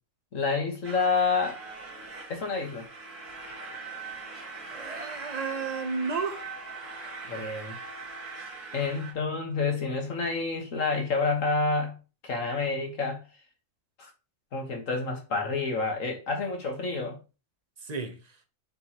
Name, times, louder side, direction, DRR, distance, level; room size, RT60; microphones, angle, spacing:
voice 1, 0.3-1.6 2.3-2.9 7.3-7.8 8.7-12.0 12.2-13.2 14.0-14.1 14.5-17.2, left 4 dB, 60° left, 1.8 m, -28 dB
sound 1, 0.8-9.1, right 4 dB, 80° right, 2.6 m, -41 dB
voice 2, 4.7-6.5 17.8-18.4, right 4 dB, 35° right, 0.8 m, -33 dB
7.6 x 4.7 x 3.0 m
omnidirectional pair, 1.6 m